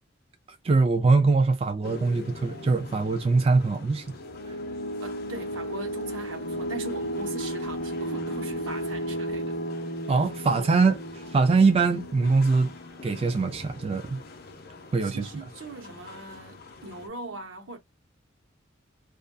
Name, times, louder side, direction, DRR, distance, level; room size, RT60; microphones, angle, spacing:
voice 1, 0.6-4.0 10.1-11.0 11.3-12.7 13.0-14.2 14.9-15.3, right 4 dB, 30° right, 0.3 m, -22 dB
sound 1, 1.8-17.1, equal, 50° left, 0.5 m, -36 dB
voice 2, 5.0-9.6 15.0-17.8, right 3 dB, 80° right, 0.8 m, -40 dB
2.3 x 2.2 x 2.4 m
head